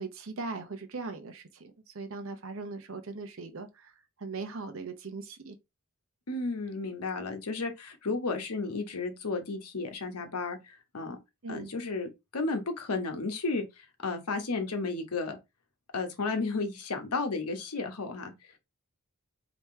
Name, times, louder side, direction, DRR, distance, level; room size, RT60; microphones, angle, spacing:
voice 1, 0.0-3.9 4.2-5.6 11.4-11.7, right 3 dB, 60° right, 0.8 m, -39 dB
voice 2, 6.3-11.2 11.5-15.4 15.9-18.6, left 3 dB, 90° left, 1.1 m, -33 dB
3.6 x 2.9 x 4.2 m
head